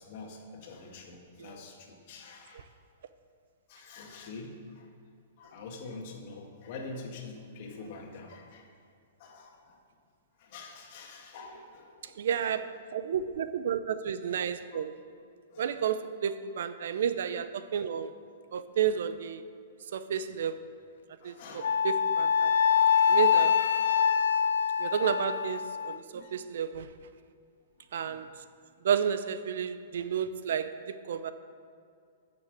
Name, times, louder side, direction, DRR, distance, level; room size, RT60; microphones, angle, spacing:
voice 1, 0.0-2.7 3.7-4.9 5.4-8.7 9.2-9.8 10.4-12.5 14.7-14.8 15.1-15.2 15.5-15.7 20.1-20.4 21.2-21.9 22.9-23.2 26.1-26.3 27.8-28.3, left 3 dB, 50° left, 1 dB, 1.9 m, -46 dB
voice 2, 12.2-14.9 15.6-18.1 18.5-19.4 19.9-20.6 21.2-22.5 23.1-23.6 24.8-26.9 27.9-28.3 28.8-31.3, right 8 dB, 70° right, 12 dB, 0.6 m, -31 dB
Wind instrument woodwind instrument, 21.6-26.0, left 7 dB, 80° left, 0.5 m, -25 dB
9.1 x 7.0 x 7.7 m, 2.3 s
hypercardioid pair, 150°, 0 cm